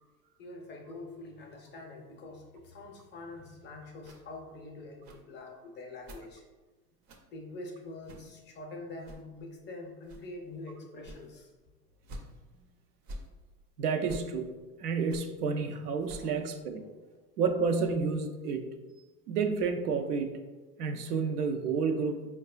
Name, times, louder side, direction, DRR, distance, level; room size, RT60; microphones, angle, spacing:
voice 1, 0.4-6.4 7.3-11.5 16.2-16.3 16.8-17.2, left 2 dB, 25° left, 1 dB, 0.5 m, -45 dB
sound 1, 4.0-4.2 5.0-5.2 6.0-6.2 7.0-7.2 8.0-8.3 9.0-9.2 10.0-10.3 11.0-11.3 12.0-12.3 13.0-13.3 14.0-14.3 15.0-15.3 16.0-16.3, equal, 40° right, 0.5 m, -46 dB
voice 2, 13.8-14.5 14.8-16.8 17.4-18.7 19.3-20.3 20.8-22.3, right 5 dB, 85° right, 5 dB, 0.5 m, -30 dB
4.6 x 2.2 x 2.3 m, 1.2 s
hypercardioid pair, 95°, 45 cm